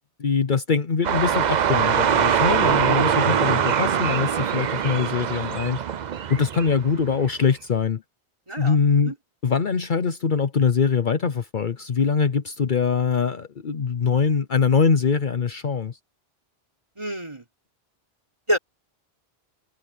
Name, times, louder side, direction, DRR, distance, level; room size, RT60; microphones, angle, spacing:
voice 1, 0.2-5.8 6.3-8.0 8.6-9.1 9.4-16.0, left 5 dB, 55° left, 1.0 m, -23 dB
sound 1, 1.0-7.3, right 8 dB, 50° right, 0.7 m, -23 dB
voice 2, 8.5-8.8 9.0-9.1 17.0-17.4 18.5-18.6, equal, 30° right, 3.8 m, -27 dB
omnidirectional pair, 1.0 m